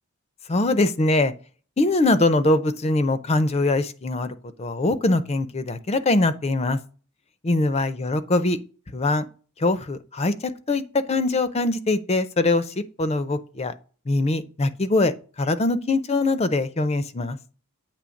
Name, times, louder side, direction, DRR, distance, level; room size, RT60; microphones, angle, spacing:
voice 1, 0.5-1.3 1.8-6.8 7.4-8.6 8.9-9.2 9.6-13.7 14.1-15.1 15.4-17.4, left 2 dB, 30° left, 0.5 m, -22 dB
8.4 x 3.2 x 6.3 m
head